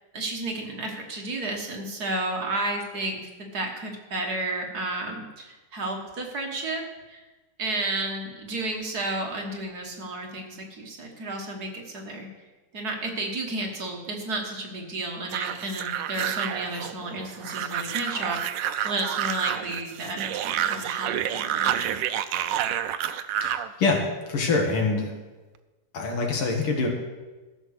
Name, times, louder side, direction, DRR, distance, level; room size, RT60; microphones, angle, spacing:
voice 1, 0.1-3.2 3.5-7.2 7.6-12.3 12.7-22.0, right 2 dB, 50° right, 1 dB, 1.8 m, -32 dB
sound 1, 15.3-23.7, right 10 dB, 75° right, 1.1 m, -29 dB
voice 2, 23.4-25.1 25.9-26.9, left 3 dB, 80° left, 1 dB, 2.7 m, -25 dB
14.0 x 6.1 x 6.5 m, 1.2 s
omnidirectional pair, 2.4 m